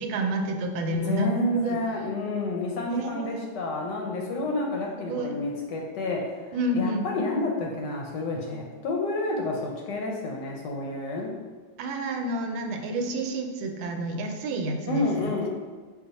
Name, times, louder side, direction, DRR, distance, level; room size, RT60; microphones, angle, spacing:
voice 1, 0.0-1.8 2.9-3.5 5.0-5.4 6.5-7.1 11.8-15.3, right 1 dB, 90° right, 4 dB, 1.4 m, -29 dB
voice 2, 0.9-6.4 6.7-11.3 14.9-15.5, left 2 dB, 70° left, -1 dB, 1.1 m, -29 dB
5.3 x 2.3 x 4.0 m, 1.4 s
omnidirectional pair, 2.2 m